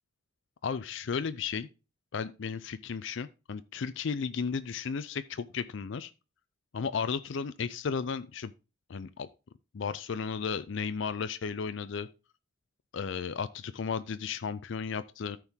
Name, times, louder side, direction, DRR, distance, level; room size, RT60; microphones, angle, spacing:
voice 1, 0.6-1.7 2.1-6.1 6.7-8.5 8.9-9.3 9.7-12.1 12.9-15.4, left 6 dB, 65° left, 0.4 m, -34 dB
13.5 x 4.5 x 3.6 m
head